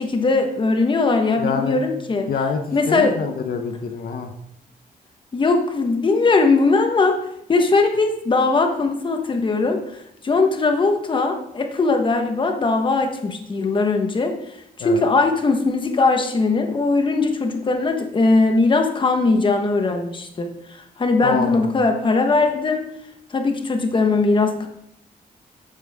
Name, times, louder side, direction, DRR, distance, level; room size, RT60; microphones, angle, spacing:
voice 1, 0.0-2.3 2.7-3.2 5.3-7.2 7.5-9.8 10.2-14.4 14.8-22.8 23.3-24.7, left 3 dB, 30° left, 5 dB, 1.3 m, -20 dB
voice 2, 1.4-1.9 2.3-2.6 2.9-4.3 14.8-15.0 21.2-21.7, left 5 dB, 70° left, 5 dB, 1.1 m, -26 dB
12.5 x 9.0 x 3.7 m, 0.75 s
wide cardioid pair, 165°, 16 cm